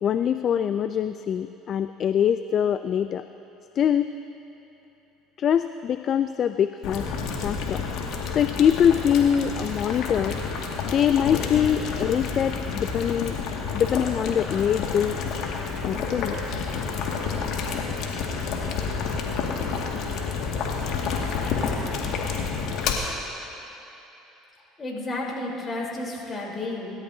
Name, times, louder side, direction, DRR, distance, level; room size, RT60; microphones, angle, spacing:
voice 1, 0.0-3.3 3.8-4.1 5.4-7.1 7.4-7.8 8.3-10.3 10.8-13.4 13.7-15.2 15.8-16.7, left 9 dB, 50° left, 11 dB, 0.4 m, -23 dB
Boiling, 6.8-22.9, left 5 dB, 65° left, 2.0 m, -29 dB
voice 2, 24.8-26.9, left 2 dB, 30° left, -2 dB, 3.8 m, -31 dB
26.0 x 13.5 x 2.8 m, 3.0 s
hypercardioid pair, 75°, 0 cm